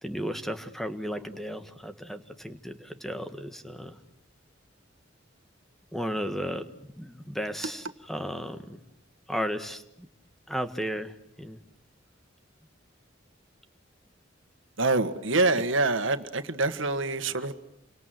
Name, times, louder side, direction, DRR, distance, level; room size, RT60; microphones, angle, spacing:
voice 1, 0.0-4.0 5.9-6.7 7.0-7.8 8.1-8.8 9.3-9.8 10.5-11.1 11.4-11.6, equal, ahead, 8 dB, 1.5 m, -34 dB
voice 2, 14.8-17.5, right 3 dB, 85° right, 10 dB, 1.7 m, -25 dB
29.5 x 25.0 x 7.8 m, 0.77 s
head